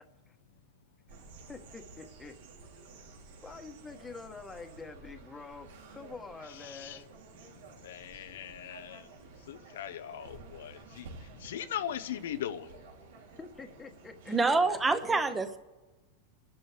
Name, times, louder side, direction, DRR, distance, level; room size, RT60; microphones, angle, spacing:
sound 1, 1.1-14.9, right 4 dB, 85° right, 3.2 m, -53 dB
voice 1, 1.5-2.3 3.4-7.0 13.4-14.3 14.7-14.8 15.1-15.2, left 4 dB, 10° left, 1.2 m, -46 dB
voice 2, 6.4-7.0 7.8-9.1 9.5-12.8, left 10 dB, 85° left, 0.8 m, -40 dB
voice 3, 14.3-15.6, right 3 dB, 10° right, 1.0 m, -26 dB
30.0 x 11.5 x 3.4 m
supercardioid pair, 155°, 0 cm